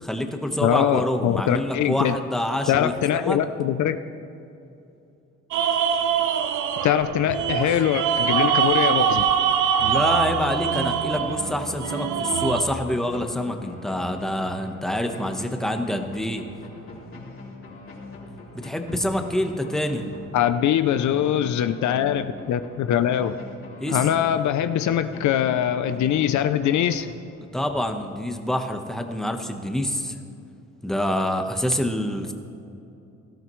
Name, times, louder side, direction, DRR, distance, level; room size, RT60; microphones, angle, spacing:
voice 1, 0.0-3.4 9.8-16.4 18.5-20.0 23.8-24.0 27.5-30.1 30.8-32.3, left 1 dB, ahead, 5 dB, 1.2 m, -26 dB
voice 2, 0.6-2.1 2.7-4.0 6.8-9.3 20.3-23.4 23.9-27.1, left 10 dB, 70° left, 11 dB, 0.6 m, -22 dB
sound 1, 5.5-12.6, right 8 dB, 80° right, 0.8 m, -23 dB
sound 2, 11.1-27.6, left 2 dB, 45° left, 3.1 m, -41 dB
17.5 x 13.0 x 3.2 m, 2.6 s
cardioid pair, 90°, 30 cm